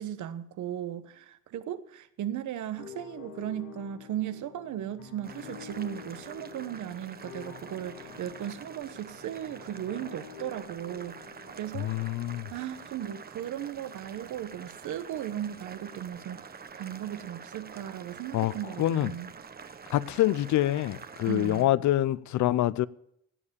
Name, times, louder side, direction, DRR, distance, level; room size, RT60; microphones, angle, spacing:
voice 1, 0.0-11.2 11.5-11.9 12.5-19.3 21.2-21.7, right 11 dB, 75° right, 1.1 m, -36 dB
sound 1, 2.8-11.7, left 9 dB, 90° left, 1.2 m, -48 dB
Boiling, 5.2-21.6, right 5 dB, 30° right, 1.0 m, -47 dB
voice 2, 11.7-12.5 18.3-19.1 19.9-22.9, left 14 dB, 70° left, 0.6 m, -26 dB
17.0 x 7.4 x 6.8 m
cardioid pair, 90°, 30 cm